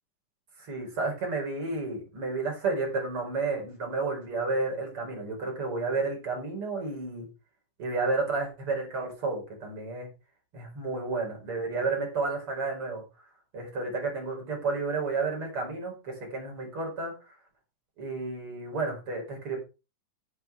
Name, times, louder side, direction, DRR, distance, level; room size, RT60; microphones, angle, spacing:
voice 1, 0.6-7.3 7.8-10.1 10.5-13.0 13.5-17.1 18.0-19.6, right 3 dB, 40° right, 0 dB, 5.5 m, -31 dB
13.5 x 8.3 x 3.5 m, 0.31 s
omnidirectional pair, 3.9 m